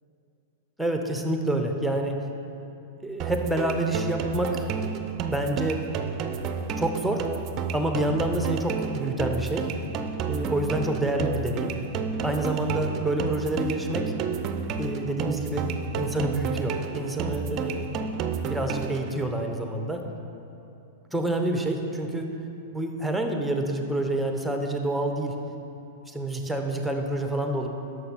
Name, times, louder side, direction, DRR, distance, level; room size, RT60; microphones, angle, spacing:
voice 1, 0.8-2.1 3.0-4.7 5.3-5.8 6.8-7.3 7.7-9.7 10.3-11.8 12.2-14.1 14.8-15.7 16.0-17.9 18.4-20.0 21.1-22.3 22.7-25.4 26.1-27.7, right 1 dB, ahead, 4 dB, 0.9 m, -28 dB
sound 1, 3.2-19.2, right 6 dB, 35° right, 0.5 m, -31 dB
11.0 x 6.5 x 4.2 m, 2.8 s
figure-of-eight pair, 100°, 0 cm